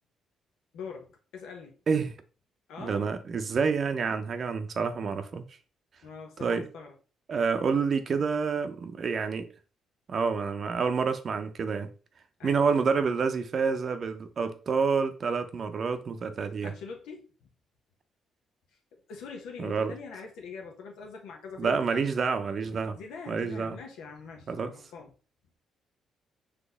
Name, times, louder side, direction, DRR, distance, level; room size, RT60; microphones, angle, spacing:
voice 1, 0.7-1.8 2.7-3.1 6.0-6.9 12.4-12.6 16.6-17.5 18.9-22.1 22.9-25.1, left 5 dB, 90° left, 0.9 m, -43 dB
voice 2, 2.8-5.4 6.4-6.7 7.3-9.5 10.1-11.9 12.4-16.7 19.6-19.9 21.6-23.0 23.3-23.8 24.5-24.7, right 5 dB, 50° right, 0.6 m, -28 dB
4.1 x 2.9 x 3.4 m
cardioid pair, 90°, 0 cm